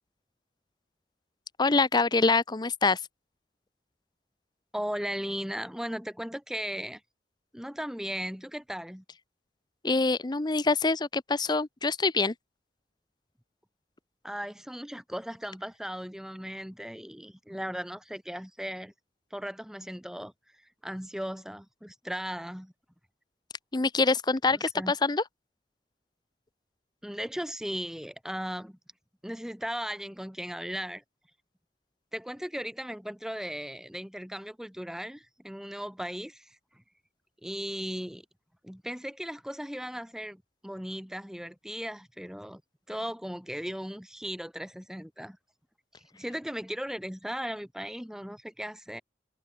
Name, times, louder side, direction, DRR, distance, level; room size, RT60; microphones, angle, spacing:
voice 1, 1.6-3.0 9.8-12.3 23.7-25.2, left 3 dB, 25° left, 0.7 m, -25 dB
voice 2, 4.7-7.0 7.5-9.0 14.2-18.9 19.3-22.7 24.5-24.9 27.0-28.8 29.2-31.0 32.1-36.8 37.4-38.3 38.6-42.6 42.9-45.4 45.9-49.0, equal, 5° right, 1.9 m, -37 dB
head